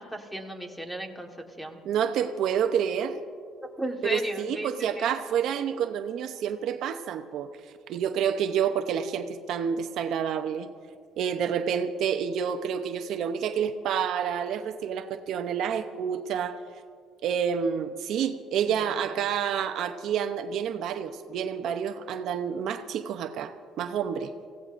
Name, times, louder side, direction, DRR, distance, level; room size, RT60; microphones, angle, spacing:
voice 1, 0.0-1.8 3.8-5.1 18.7-19.2, right 1 dB, ahead, 3 dB, 1.4 m, -35 dB
voice 2, 1.9-3.2 4.0-7.5 7.9-10.7 11.2-16.6 17.2-24.3, right 8 dB, 65° right, 8 dB, 0.7 m, -28 dB
26.5 x 16.0 x 2.6 m, 2.2 s
cardioid pair, 120°, 0 cm